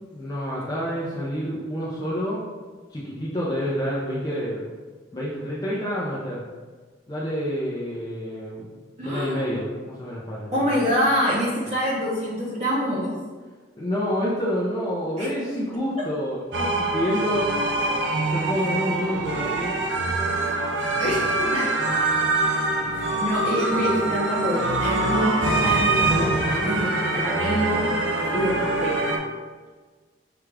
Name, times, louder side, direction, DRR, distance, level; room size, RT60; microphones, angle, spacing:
voice 1, 0.1-2.4 2.9-4.7 5.1-6.4 7.1-8.7 9.0-10.6 13.8-17.5 18.3-19.8, equal, 20° left, -6 dB, 0.5 m, -28 dB
voice 2, 9.0-9.5 10.5-13.2 15.2-15.3 21.0-21.7 23.2-27.9 28.3-28.9, equal, 35° right, -6 dB, 0.7 m, -25 dB
sound 1, 16.5-29.2, right 2 dB, 75° right, 0.6 m, -24 dB
5.9 x 2.3 x 3.3 m, 1.4 s
head